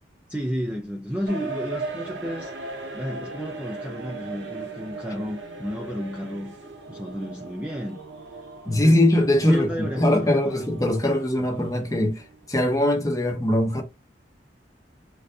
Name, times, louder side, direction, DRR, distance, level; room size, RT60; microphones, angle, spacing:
voice 1, 0.3-6.5 6.9-8.0 8.3-8.4 8.8-9.0 9.4-10.6, equal, 10° right, 0.3 m, -32 dB
sound 1, 1.3-12.5, right 3 dB, 75° right, 0.7 m, -38 dB
voice 2, 8.7-13.8, left 1 dB, 20° left, 0.7 m, -21 dB
3.3 x 2.5 x 2.3 m
head